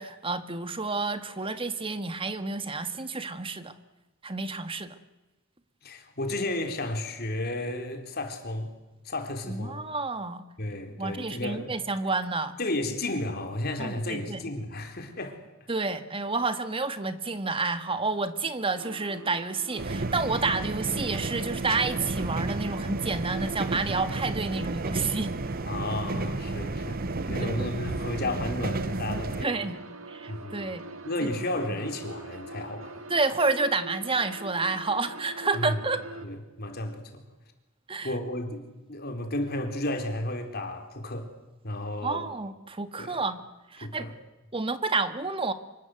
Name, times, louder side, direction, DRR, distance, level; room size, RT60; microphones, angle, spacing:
voice 1, 0.0-3.7 4.2-5.0 9.5-10.4 11.0-12.5 13.8-14.4 15.7-25.3 27.4-27.6 29.4-29.8 30.1-30.8 31.2-31.3 31.7-31.8 33.1-36.0 37.9-38.1 42.0-43.4 43.7-44.1 44.5-45.5, right 3 dB, 25° right, 1.7 m, -30 dB
voice 2, 5.8-8.7 9.0-9.8 10.6-11.7 12.6-15.4 25.6-27.0 27.3-29.7 30.3-30.7 31.0-33.0 35.5-35.8 36.2-37.2 38.0-38.6 38.9-41.3 41.6-42.3 43.0-43.2 43.8-44.1, left 1 dB, 50° left, 4.2 m, -33 dB
sound 1, 18.7-36.3, right 3 dB, 75° right, 2.8 m, -43 dB
sound 2, 19.8-29.5, right 2 dB, 45° right, 0.8 m, -32 dB
26.5 x 24.0 x 8.0 m
head